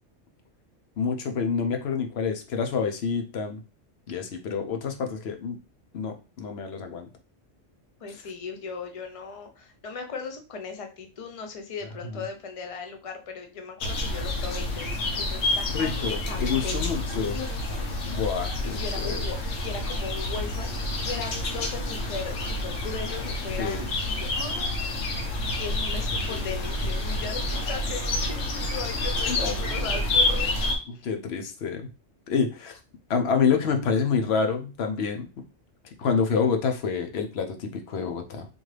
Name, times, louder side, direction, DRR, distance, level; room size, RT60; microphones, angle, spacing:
voice 1, 1.0-3.6 4.1-5.6 5.9-7.1 15.7-17.4 18.0-19.2 23.6-23.9 26.3-26.4 29.3-29.5 31.0-31.9 32.3-32.8 33.1-35.4 36.0-38.5, left 6 dB, 60° left, 6 dB, 0.9 m, -27 dB
voice 2, 8.0-18.2 18.6-25.1 25.6-30.6 30.9-31.0, left 5 dB, 40° left, 5 dB, 0.5 m, -38 dB
sound 1, 13.8-30.8, left 2 dB, 80° left, 1.2 m, -28 dB
3.8 x 2.7 x 3.2 m, 0.32 s
omnidirectional pair, 1.3 m